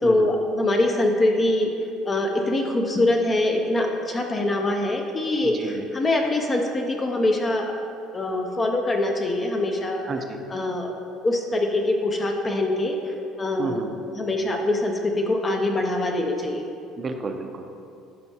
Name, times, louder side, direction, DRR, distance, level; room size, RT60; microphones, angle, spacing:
voice 1, 0.0-1.7 2.1-7.7 8.1-10.0 10.5-10.9 11.2-13.8 14.1-16.6, left 2 dB, 25° left, 2 dB, 0.5 m, -23 dB
voice 2, 5.4-5.8 10.0-10.4 13.6-13.9 17.0-17.7, right 4 dB, 30° right, 5 dB, 0.5 m, -31 dB
11.5 x 4.3 x 2.9 m, 2.6 s
cardioid pair, 135°, 0 cm